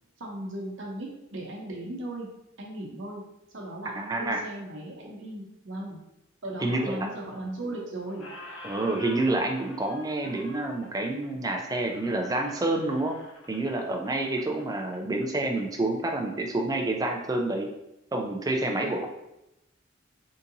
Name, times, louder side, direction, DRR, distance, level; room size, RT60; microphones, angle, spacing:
voice 1, 0.2-2.3 2.6-3.2 3.5-6.0 6.4-8.3 18.8-19.0, right 1 dB, 70° right, -2 dB, 0.8 m, -37 dB
voice 2, 3.9-4.4 5.0-5.1 6.6-7.1 8.6-13.2 13.5-17.7 18.1-19.1, right 2 dB, 20° right, 2 dB, 0.3 m, -28 dB
Squeak, 7.2-7.8 8.1-15.7, left 2 dB, 75° left, 0.7 m, -48 dB
3.7 x 2.8 x 2.6 m, 0.90 s
head